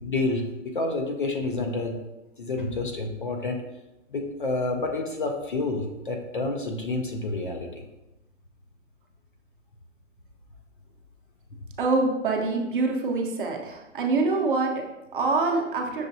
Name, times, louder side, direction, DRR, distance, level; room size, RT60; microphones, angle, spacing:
voice 1, 0.0-2.0 2.4-3.6 4.1-7.8, left 2 dB, 45° left, 3 dB, 0.4 m, -29 dB
voice 2, 11.8-16.1, right 3 dB, 45° right, 1 dB, 0.6 m, -25 dB
6.2 x 2.2 x 2.6 m, 0.98 s
hypercardioid pair, 165°, 39 cm